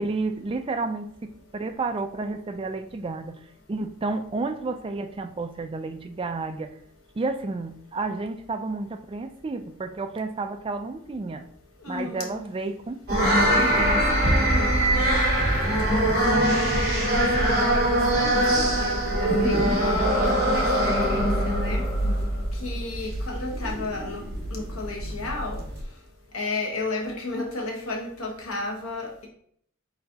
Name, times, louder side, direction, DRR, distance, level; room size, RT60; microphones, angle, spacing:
voice 1, 0.0-3.4 3.7-6.7 7.2-11.5 11.9-13.6, right 3 dB, 25° right, 0.3 m, -31 dB
voice 2, 11.8-12.4 13.7-14.0 14.3-15.3 16.5-21.8 22.6-24.2 24.5-25.6 26.3-29.3, left 2 dB, 75° left, 1.2 m, -33 dB
sound 1, 13.1-25.8, right 1 dB, 45° right, 1.9 m, -23 dB
4.0 x 3.9 x 2.8 m
head